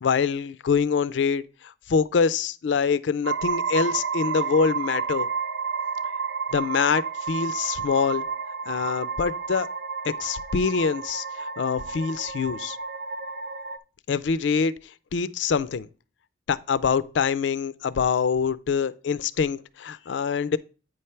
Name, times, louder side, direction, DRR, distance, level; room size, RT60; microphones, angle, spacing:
voice 1, 0.0-5.3 6.5-8.2 8.7-9.7 10.0-12.8 14.1-14.7 15.1-15.9 16.5-20.6, left 5 dB, 75° left, 0.4 m, -25 dB
sound 1, 3.2-13.8, right 5 dB, 65° right, 0.6 m, -31 dB
8.8 x 3.3 x 5.6 m
head